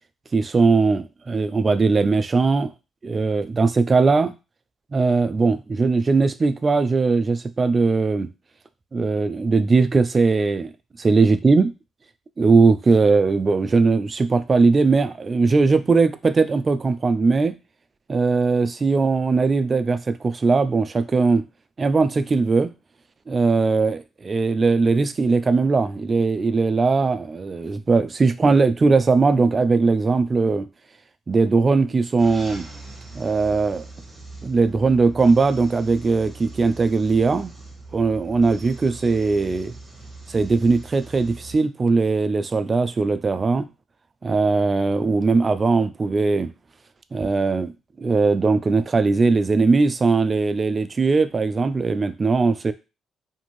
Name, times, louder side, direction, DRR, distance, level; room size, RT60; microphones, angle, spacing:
voice 1, 0.3-2.7 3.0-4.3 4.9-8.3 8.9-10.7 11.0-11.7 12.4-17.5 18.1-21.4 21.8-22.7 23.3-30.7 31.3-32.7 33.1-33.8 34.4-37.5 37.9-39.7 40.3-43.7 44.2-46.5 47.1-47.7 48.0-52.7, right 4 dB, 35° right, 0.3 m, -19 dB
sound 1, 32.2-41.6, right 3 dB, ahead, 1.0 m, -41 dB
2.6 x 2.5 x 3.0 m
cardioid pair, 90°, 0 cm